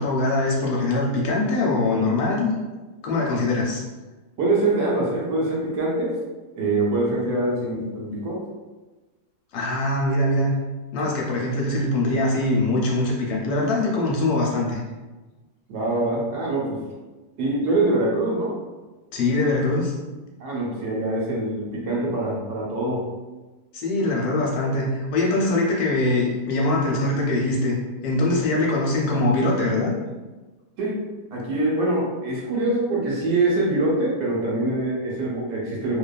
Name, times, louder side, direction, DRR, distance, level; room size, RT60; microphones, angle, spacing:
voice 1, 0.0-2.5 3.0-3.8 9.5-10.5 10.9-14.8 19.1-19.9 23.7-27.7 28.0-29.9, left 2 dB, 70° left, -2 dB, 1.0 m, -22 dB
voice 2, 4.4-6.1 6.5-8.4 15.7-16.8 17.4-18.5 20.4-23.1 30.8-31.0 31.3-36.0, right 2 dB, 75° right, -4 dB, 1.2 m, -24 dB
2.7 x 2.3 x 2.2 m, 1.2 s
omnidirectional pair, 1.8 m